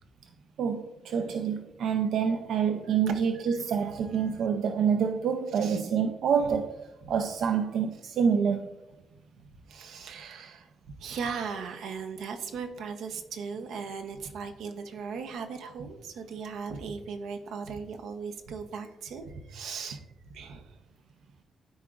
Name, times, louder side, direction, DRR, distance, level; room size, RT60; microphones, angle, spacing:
voice 1, 0.6-6.8 7.1-8.7, right 7 dB, 65° right, 0.4 m, -27 dB
voice 2, 2.9-3.2 3.9-4.5 5.6-5.8 7.0-7.1 9.7-10.7 11.0-20.8, right 5 dB, 85° right, 0.8 m, -38 dB
12.5 x 4.7 x 2.4 m
cardioid pair, 175°, 0 cm